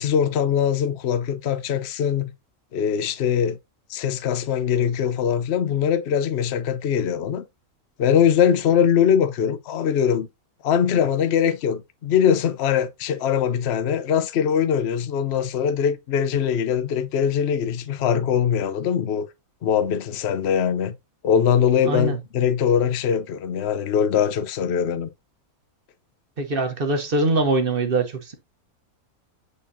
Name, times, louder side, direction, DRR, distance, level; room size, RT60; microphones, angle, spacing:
voice 1, 0.0-2.3 2.7-3.6 3.9-7.4 8.0-10.3 10.6-19.3 19.6-21.0 21.2-25.1, left 8 dB, 55° left, 0.9 m, -22 dB
voice 2, 21.8-22.2 26.4-28.3, right 2 dB, 40° right, 1.1 m, -23 dB
8.3 x 4.3 x 2.7 m
omnidirectional pair, 1.6 m